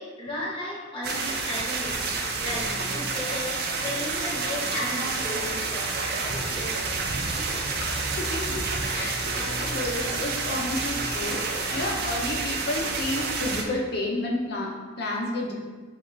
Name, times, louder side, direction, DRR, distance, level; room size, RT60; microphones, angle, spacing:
voice 1, 0.0-1.9 2.3-6.9 7.2-7.5, left 1 dB, 30° left, -6 dB, 1.1 m, -35 dB
sound 1, 1.0-13.6, right 3 dB, 55° right, 0.5 m, -29 dB
voice 2, 8.2-8.7 8.9-15.5, left 2 dB, 60° left, -1 dB, 0.7 m, -31 dB
5.4 x 2.5 x 3.3 m, 1.3 s
head